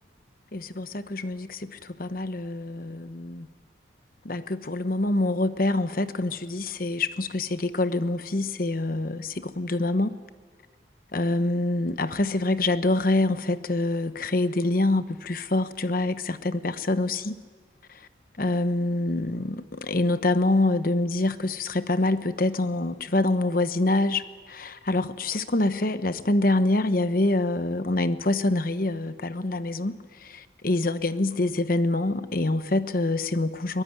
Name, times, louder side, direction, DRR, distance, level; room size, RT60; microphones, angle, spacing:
voice 1, 0.5-3.5 4.2-10.2 11.1-17.4 17.9-18.1 18.4-33.8, left 2 dB, 50° left, 1.0 m, -26 dB
22.5 x 18.5 x 9.9 m
head